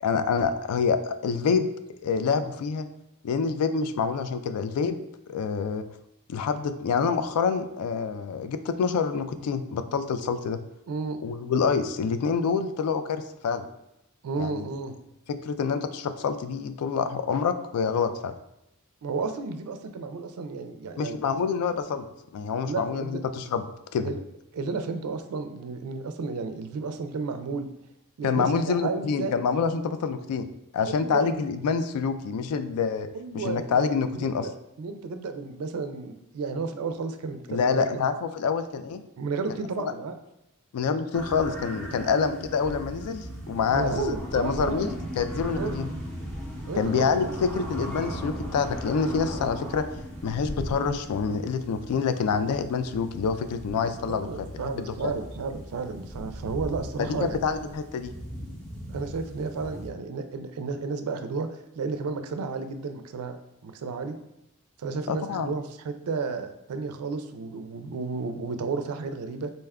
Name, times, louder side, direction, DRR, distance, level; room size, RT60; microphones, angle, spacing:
voice 1, 0.0-1.7 2.0-2.9 3.2-5.0 5.3-5.8 6.3-10.6 11.2-13.6 14.4-14.7 15.3-18.3 21.0-22.0 22.3-23.6 23.9-24.1 28.2-30.5 30.7-33.1 33.3-34.5 37.5-39.0 40.7-45.9 46.8-49.9 50.2-54.3 54.7-55.1 57.0-58.1 65.1-65.5, left 5 dB, 80° left, 11 dB, 0.3 m, -27 dB
voice 2, 10.9-11.2 14.2-15.0 19.0-21.2 22.7-23.2 24.0-24.2 24.5-27.7 28.2-29.3 30.9-31.3 33.1-33.8 34.2-34.5 34.8-38.0 39.2-40.2 41.9-42.2 43.7-44.8 45.5-45.8 46.7-47.3 54.1-57.4 58.9-61.5 61.8-63.4 63.6-64.2 64.8-69.5, right 4 dB, 70° right, 8 dB, 0.4 m, -32 dB
sound 1, 41.1-59.9, equal, 10° left, 0.6 m, -38 dB
4.0 x 2.2 x 3.5 m, 0.86 s
head